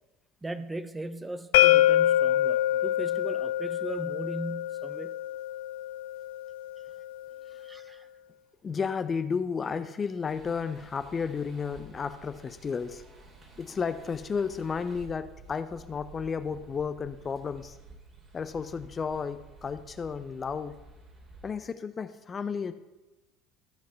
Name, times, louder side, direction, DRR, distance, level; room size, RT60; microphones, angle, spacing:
voice 1, 0.4-5.2 7.6-8.1, right 2 dB, 15° right, 0.8 m, -38 dB
sound 1, 1.5-7.3, left 13 dB, 70° left, 0.4 m, -26 dB
voice 2, 8.6-13.0 13.6-17.8 18.3-20.8 21.4-22.7, left 5 dB, 30° left, 0.6 m, -33 dB
sound 2, 10.3-21.5, right 2 dB, 35° right, 2.9 m, -52 dB
14.0 x 6.2 x 5.7 m
hypercardioid pair, 70°, 0 cm